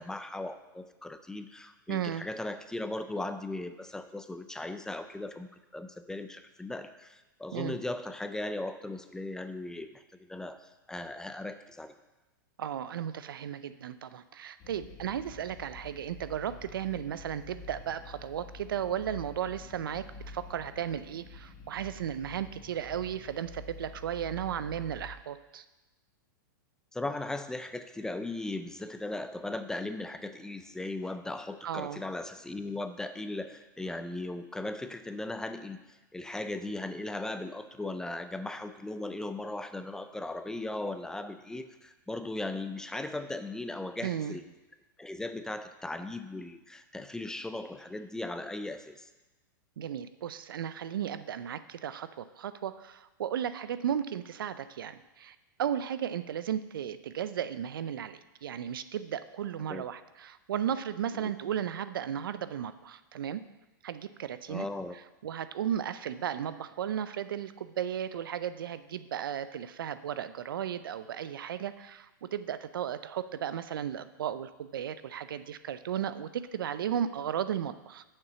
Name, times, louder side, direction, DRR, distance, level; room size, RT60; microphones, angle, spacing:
voice 1, 0.0-11.9 26.9-44.4 45.0-49.1 59.7-59.9 61.1-61.3 64.5-64.9, left 2 dB, 5° left, 9 dB, 0.4 m, -38 dB
voice 2, 1.9-2.2 7.5-7.8 12.6-25.6 31.6-32.0 44.0-44.4 49.8-63.4 63.8-64.7 65.2-78.0, right 9 dB, 85° right, 13 dB, 0.5 m, -35 dB
sound 1, 14.6-25.1, left 3 dB, 30° left, 1.5 m, -48 dB
6.8 x 5.7 x 6.8 m, 1.1 s
hypercardioid pair, 125°, 11 cm